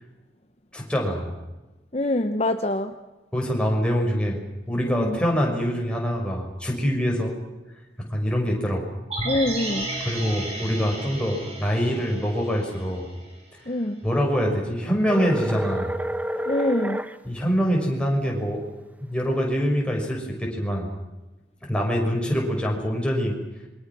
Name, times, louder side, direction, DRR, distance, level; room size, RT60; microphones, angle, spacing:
voice 1, 0.7-1.4 3.3-4.4 4.7-7.3 8.1-8.8 10.0-13.1 14.0-15.9 17.2-18.6 19.0-20.9 21.6-23.4, equal, 5° left, -1 dB, 6.2 m, -24 dB
voice 2, 1.9-3.0 4.9-5.2 9.2-9.9 13.7-14.0 16.4-17.0, left 1 dB, 35° left, 7 dB, 1.0 m, -25 dB
sound 1, 9.1-13.3 13.6-13.7, right 2 dB, 35° right, 7.7 m, -33 dB
sound 2, 15.1-17.1, right 1 dB, 10° right, 0.9 m, -28 dB
27.0 x 24.5 x 6.2 m, 1.1 s
head